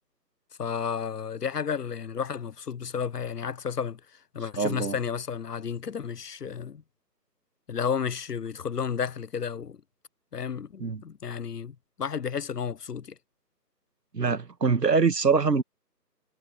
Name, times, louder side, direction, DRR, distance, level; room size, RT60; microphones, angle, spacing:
voice 1, 0.6-6.8 7.7-9.8 10.3-13.2, left 7 dB, 65° left, 0.8 m, -32 dB
voice 2, 4.6-5.0 10.8-11.0 14.1-15.6, right 5 dB, 70° right, 1.9 m, -24 dB
figure-of-eight pair, 175°, 50 cm